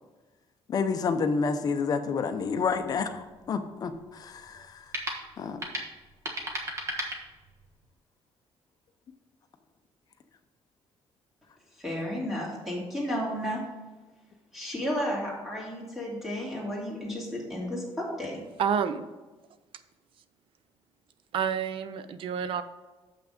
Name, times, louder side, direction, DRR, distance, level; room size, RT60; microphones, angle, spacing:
voice 1, 0.7-4.8 5.4-5.6, left 5 dB, 35° left, 7 dB, 0.6 m, -29 dB
sound 1, 2.5-7.8, equal, 30° right, 1.3 m, -38 dB
voice 2, 11.8-13.6 14.5-18.4, equal, 5° right, -4 dB, 2.4 m, -32 dB
voice 3, 18.6-19.1 21.3-22.6, right 7 dB, 55° right, 12 dB, 0.5 m, -28 dB
7.3 x 5.9 x 5.0 m, 1.2 s
cardioid pair, 170°, 11 cm